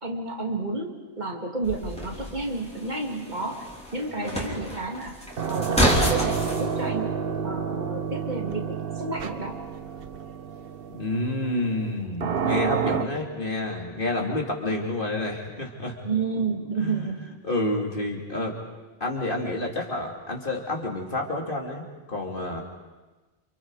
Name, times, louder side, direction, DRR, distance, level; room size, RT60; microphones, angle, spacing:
voice 1, 0.0-3.7 3.9-5.2 5.5-7.2 7.4-9.6 16.0-17.3, right 3 dB, 45° right, 1 dB, 2.7 m, -31 dB
sound 1, 1.6-6.6, left 1 dB, 5° left, 3.5 m, -29 dB
sound 2, 5.3-13.0, right 6 dB, 65° right, 1.2 m, -29 dB
voice 2, 10.9-16.0 16.8-17.1 17.4-18.6 19.0-22.6, left 2 dB, 55° left, 0 dB, 3.3 m, -29 dB
29.0 x 28.0 x 4.9 m, 1.2 s
omnidirectional pair, 1.1 m